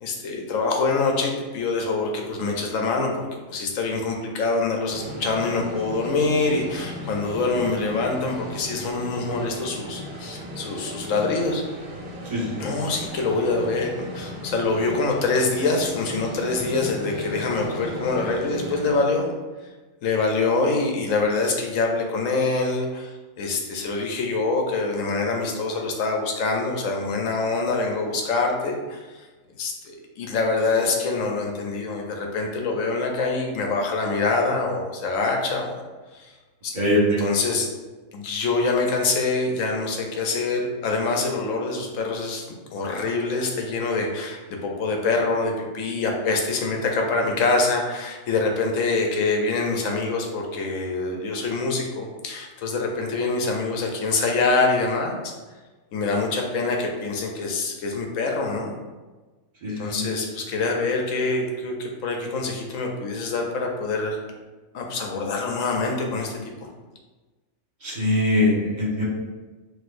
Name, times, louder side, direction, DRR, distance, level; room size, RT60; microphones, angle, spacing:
voice 1, 0.0-11.6 12.6-19.3 20.0-29.3 29.6-35.7 36.1-36.3 36.6-36.7 37.2-37.7 38.1-55.3 55.9-58.7 59.8-64.2 64.7-66.5, left 3 dB, 75° left, 1 dB, 1.1 m, -25 dB
sound 1, 4.9-18.9, equal, 50° right, 0.8 m, -36 dB
voice 2, 12.2-12.7 36.7-37.2 59.6-60.1 67.8-69.0, left 1 dB, 35° right, -6 dB, 1.5 m, -22 dB
6.0 x 2.7 x 2.5 m, 1.3 s
omnidirectional pair, 1.4 m